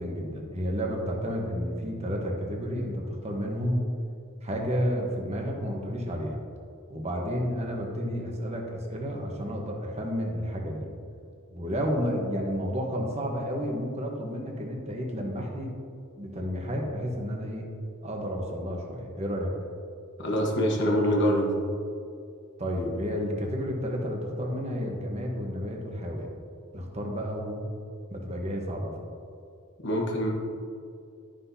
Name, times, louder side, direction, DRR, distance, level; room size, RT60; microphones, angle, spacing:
voice 1, 0.0-3.8 4.4-6.4 6.9-10.9 11.5-15.8 16.2-17.7 18.0-19.5 22.6-26.3 26.7-27.7 28.1-29.0, equal, 30° right, 0 dB, 1.1 m, -31 dB
voice 2, 20.2-21.5 29.8-30.3, equal, 55° left, -1 dB, 1.3 m, -24 dB
11.5 x 5.9 x 2.8 m, 2.5 s
head